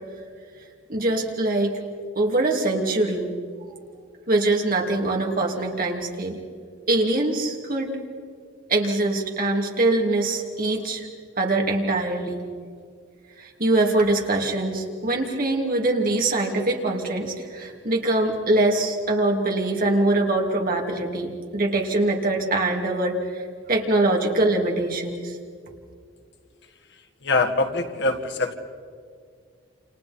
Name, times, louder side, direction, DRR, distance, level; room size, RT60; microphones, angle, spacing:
voice 1, 0.9-1.8 2.1-3.3 4.3-6.4 6.9-8.0 8.7-11.1 11.4-12.4 13.4-23.4 23.7-25.4, right 2 dB, 50° right, 1 dB, 2.9 m, -23 dB
voice 2, 27.2-28.5, left 3 dB, 65° left, 5 dB, 1.9 m, -23 dB
29.0 x 28.5 x 4.4 m, 2.2 s
head